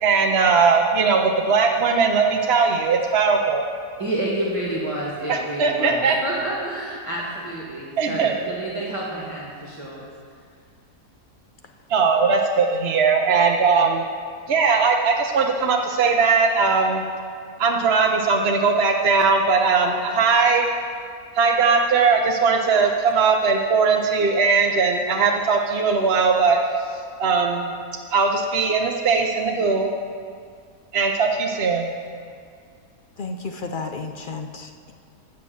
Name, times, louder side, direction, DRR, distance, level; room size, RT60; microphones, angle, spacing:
voice 1, 0.0-3.7 5.3-6.2 8.0-8.3 11.9-14.0 14.5-17.0 17.6-20.7 21.3-26.6 27.2-27.7 28.1-29.9 30.9-31.9, right 5 dB, 50° right, 2 dB, 0.8 m, -19 dB
voice 2, 4.0-10.0, right 1 dB, 20° right, -6 dB, 2.1 m, -29 dB
voice 3, 33.2-34.9, left 3 dB, 55° left, 5 dB, 0.5 m, -32 dB
15.5 x 6.3 x 7.2 m, 2.2 s
omnidirectional pair, 1.7 m